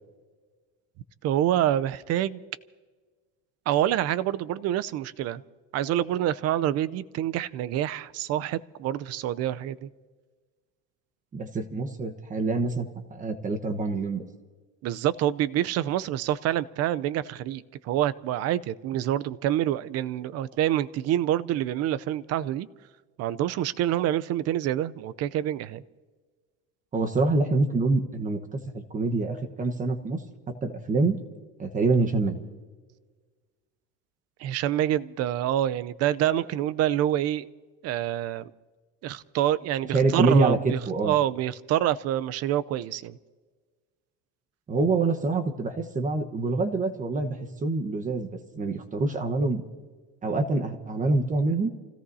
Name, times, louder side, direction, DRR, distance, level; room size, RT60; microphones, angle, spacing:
voice 1, 1.2-2.4 3.7-5.4 5.7-9.9 14.8-22.7 23.2-25.8 34.4-37.5 37.8-38.5 39.0-43.2, right 12 dB, 50° right, 15 dB, 0.7 m, -27 dB
voice 2, 11.3-14.2 26.9-30.2 30.6-31.2 31.6-32.4 39.9-41.1 44.7-48.3 48.5-49.6 50.2-51.7, right 3 dB, 25° right, 5 dB, 1.2 m, -26 dB
29.5 x 17.5 x 2.8 m, 1.4 s
cardioid pair, 135°, 31 cm